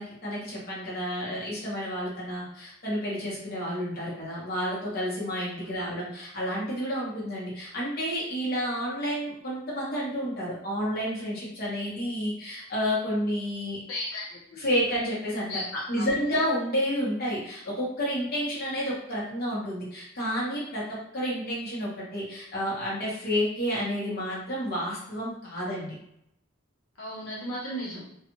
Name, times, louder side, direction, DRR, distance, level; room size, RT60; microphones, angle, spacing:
voice 1, 0.0-13.8 14.6-26.0, equal, 50° left, -7 dB, 1.0 m, -30 dB
voice 2, 13.9-14.6 15.5-16.1 27.0-28.0, equal, 90° left, -6 dB, 0.9 m, -36 dB
2.4 x 2.3 x 2.9 m, 0.75 s
head